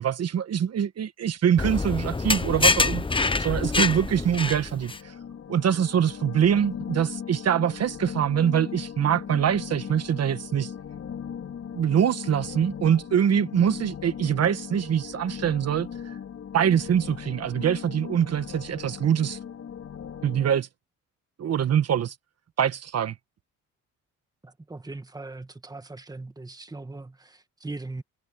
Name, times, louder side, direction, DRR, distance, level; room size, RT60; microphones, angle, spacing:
voice 1, 0.0-5.1 5.5-10.7 11.7-16.1 16.5-19.4 20.2-20.7 21.4-22.1 22.6-23.2, right 9 dB, 55° right, 1.5 m, -24 dB
sound 1, 1.6-5.0, left 3 dB, 15° left, 1.0 m, -25 dB
Warm Ambient Drone, 4.2-20.5, left 8 dB, 50° left, 5.4 m, -38 dB
voice 2, 24.4-28.0, right 2 dB, 15° right, 1.6 m, -39 dB
cardioid pair, 90°, 30 cm